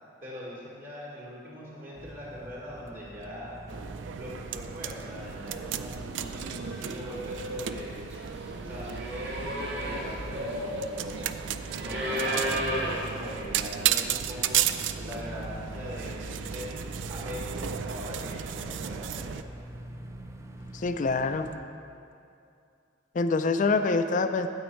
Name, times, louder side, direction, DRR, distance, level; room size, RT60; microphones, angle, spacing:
voice 1, 0.2-3.6 4.1-8.0 8.6-11.2 11.8-14.6 15.0-16.7 17.1-19.3, equal, 45° right, -6 dB, 1.6 m, -41 dB
sound 1, 2.0-21.6, right 1 dB, 15° right, 0.4 m, -44 dB
sound 2, 3.7-19.4, right 10 dB, 85° right, 0.4 m, -34 dB
sound 3, 5.9-6.0 6.2-13.4, equal, 65° right, 1.8 m, -34 dB
voice 2, 20.7-21.5 23.1-24.5, left 3 dB, 45° left, 8 dB, 0.4 m, -25 dB
9.5 x 8.1 x 4.4 m, 2.5 s
head